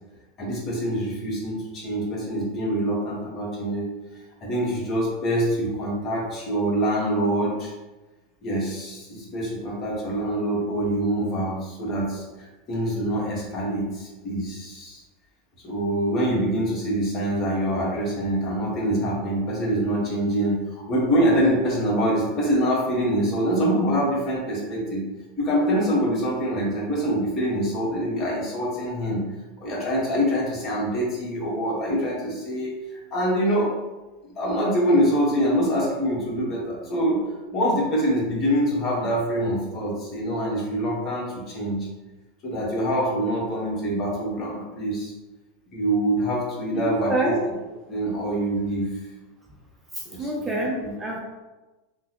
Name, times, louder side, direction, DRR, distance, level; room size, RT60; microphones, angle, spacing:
voice 1, 0.4-3.9 4.4-7.7 8.4-15.0 15.6-25.0 25.4-29.2 29.6-33.7 34.4-37.2 37.5-41.9 42.4-45.1 45.7-47.4 47.9-48.9 50.0-50.5 50.8-50.9, right 1 dB, 40° left, -4 dB, 1.2 m, -25 dB
voice 2, 46.7-47.4 50.2-51.2, right 1 dB, 15° right, -2 dB, 0.6 m, -26 dB
3.4 x 2.1 x 2.9 m, 1.1 s
supercardioid pair, 115°, 0 cm